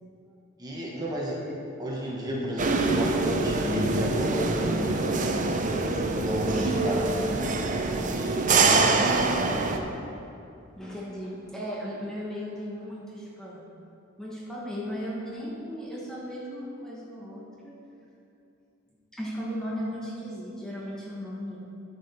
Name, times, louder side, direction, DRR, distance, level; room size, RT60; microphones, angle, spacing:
voice 1, 0.6-1.4 1.8-5.1 5.7-7.0 8.1-9.5, equal, 20° right, -4 dB, 1.4 m, -32 dB
sound 1, 2.6-9.8, right 3 dB, 40° right, 0.6 m, -25 dB
voice 2, 6.4-7.3 10.8-13.6 14.2-17.8 19.1-21.6, equal, 5° left, -6 dB, 1.2 m, -36 dB
10.5 x 7.2 x 4.3 m, 2.7 s
head